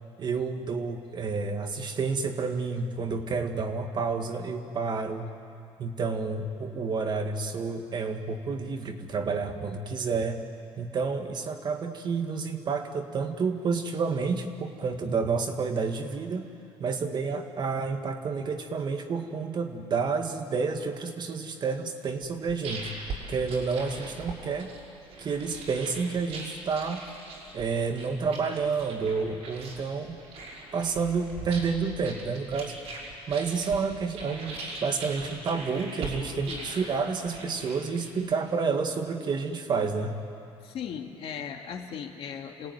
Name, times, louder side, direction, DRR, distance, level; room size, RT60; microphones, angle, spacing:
voice 1, 0.2-5.3 5.8-10.4 10.8-16.5 16.8-22.9 23.3-24.7 25.2-27.0 27.5-30.2 30.7-32.8 33.3-40.2, right 5 dB, 45° right, 5 dB, 1.9 m, -30 dB
sound 1, 22.2-38.3, right 3 dB, 80° right, 6.0 m, -41 dB
voice 2, 40.6-42.7, left 7 dB, 60° left, 3 dB, 2.2 m, -38 dB
27.5 x 17.5 x 9.5 m, 2.7 s
cardioid pair, 120°, 11 cm